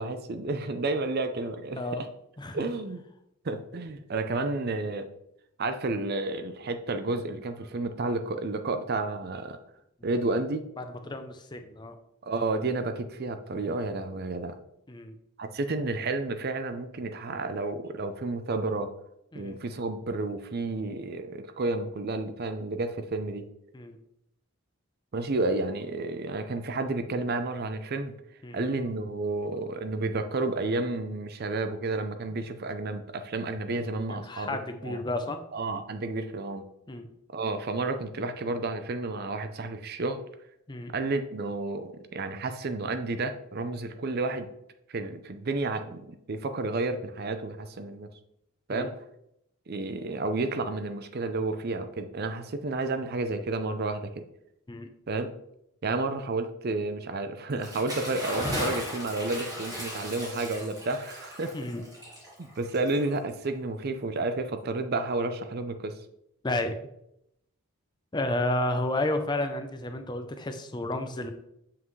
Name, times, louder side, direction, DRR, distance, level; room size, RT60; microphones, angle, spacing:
voice 1, 0.0-1.8 2.5-3.0 3.4-5.1 5.6-9.6 10.0-10.7 12.2-14.5 15.4-18.9 19.3-23.5 25.1-28.1 28.5-34.6 34.8-34.9 35.5-36.6 37.3-40.2 40.9-44.5 44.9-48.1 48.7-48.9 49.7-54.2 55.1-55.3 55.8-61.5 62.4-66.0, right 2 dB, 45° right, 9 dB, 0.5 m, -31 dB
voice 2, 10.8-12.0 14.9-15.2 19.3-19.6 23.7-24.0 28.4-28.6 34.1-35.4 36.9-37.1 40.7-40.9 48.7-48.9 54.7-54.9 61.5-61.8 66.4-66.8 68.1-71.3, left 1 dB, 20° left, 7 dB, 0.5 m, -31 dB
Bathtub (filling or washing) / Splash splatter, 57.5-63.4, equal, 15° right, 1.9 m, -36 dB
7.3 x 5.8 x 3.2 m, 0.79 s
head